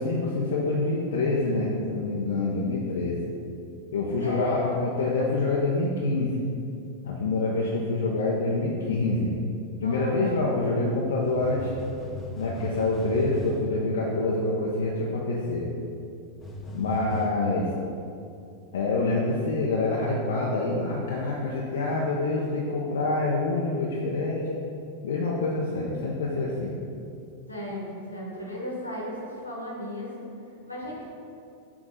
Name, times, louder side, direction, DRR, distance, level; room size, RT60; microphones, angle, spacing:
voice 1, 0.0-3.2 3.9-6.3 7.0-9.3 9.8-11.7 12.3-15.7 16.7-17.7 18.7-24.4 25.0-26.7, left 2 dB, 60° left, -4 dB, 0.7 m, -26 dB
voice 2, 4.2-4.8 9.7-10.3 16.8-17.2 27.5-30.3 30.6-31.0, left 1 dB, 85° left, -4 dB, 1.4 m, -36 dB
sound 1, 11.2-13.7 16.4-17.3, left 1 dB, 20° left, 0.7 m, -39 dB
6.2 x 3.6 x 4.9 m, 2.5 s
figure-of-eight pair, 90°, 0 cm